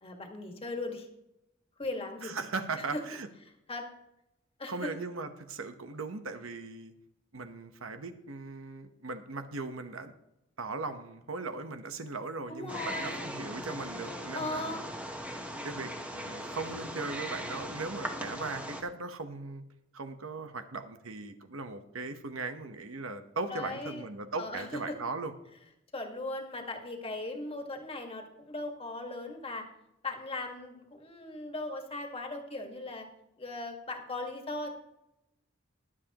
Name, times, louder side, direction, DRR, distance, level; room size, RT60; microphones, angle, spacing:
voice 1, 0.0-1.1 1.8-2.4 2.9-3.0 3.7-3.9 4.6-4.9 12.5-13.2 14.3-14.8 23.5-24.0 24.4-25.0 25.9-29.7 30.0-33.1 33.4-34.7, left 2 dB, 30° left, 3 dB, 1.8 m, -38 dB
voice 2, 2.2-3.3 4.7-6.9 7.3-10.1 10.6-14.8 15.6-19.6 19.9-25.3, right 3 dB, 80° right, 8 dB, 1.1 m, -38 dB
Wild animals, 12.7-18.8, equal, 5° right, 1.1 m, -39 dB
22.0 x 7.5 x 3.0 m, 0.86 s
head